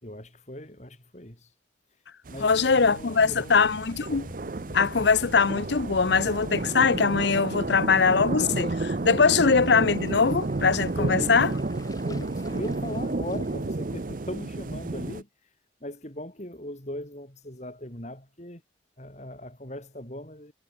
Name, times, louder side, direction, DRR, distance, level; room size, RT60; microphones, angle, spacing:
voice 1, 0.0-1.5 2.3-3.6 11.0-11.6 12.1-15.3 15.8-18.6 19.0-20.5, left 1 dB, 35° left, 4.9 m, -39 dB
sound 1, 2.3-15.2, right 2 dB, 45° right, 0.6 m, -31 dB
voice 2, 2.4-4.3 4.7-11.5, left 5 dB, 65° left, 0.7 m, -22 dB
Waves surf, 2.4-14.4, left 4 dB, 20° left, 5.5 m, -59 dB
sound 2, 2.5-12.9, left 1 dB, 85° left, 2.6 m, -47 dB
head